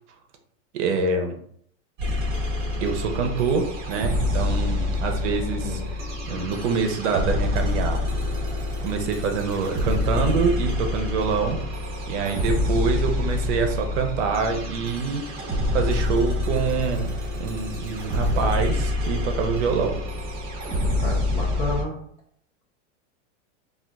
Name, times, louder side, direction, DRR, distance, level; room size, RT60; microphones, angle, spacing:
voice 1, 0.7-1.4 2.8-5.8 6.3-8.0 8.8-11.6 12.1-15.2 15.7-20.0, right 5 dB, 65° right, 4 dB, 0.7 m, -25 dB
sound 1, 2.0-21.8, left 2 dB, 25° right, 1.0 m, -27 dB
voice 2, 21.0-22.0, left 1 dB, 20° left, -3 dB, 0.5 m, -30 dB
3.7 x 2.5 x 2.3 m, 0.66 s
supercardioid pair, 150°, 38 cm